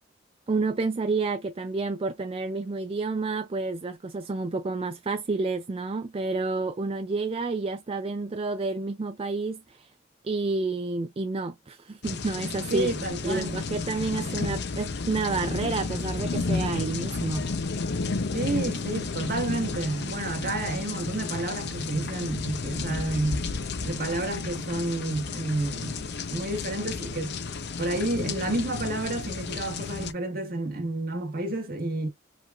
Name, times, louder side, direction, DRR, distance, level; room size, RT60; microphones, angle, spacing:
voice 1, 0.5-9.9 10.2-12.9 13.2-17.4, right 3 dB, 30° right, 0.4 m, -29 dB
sound 1, 12.0-30.1, left 4 dB, 60° left, 0.7 m, -32 dB
voice 2, 12.7-13.6 18.3-23.5 23.8-27.3 27.8-32.1, right 2 dB, 50° right, 1.7 m, -30 dB
5.0 x 3.6 x 2.5 m
head